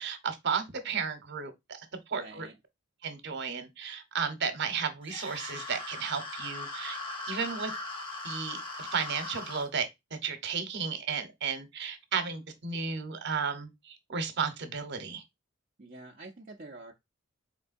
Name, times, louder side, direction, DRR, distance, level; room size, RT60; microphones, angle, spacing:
voice 1, 0.0-2.5 3.0-7.0 7.3-7.7 8.2-15.2, right 6 dB, 60° right, 0.9 m, -34 dB
voice 2, 2.1-2.5 15.8-16.9, right 2 dB, 40° right, 0.6 m, -46 dB
sound 1, 5.0-9.7, left 2 dB, 25° left, 1.1 m, -39 dB
4.4 x 3.3 x 2.5 m
head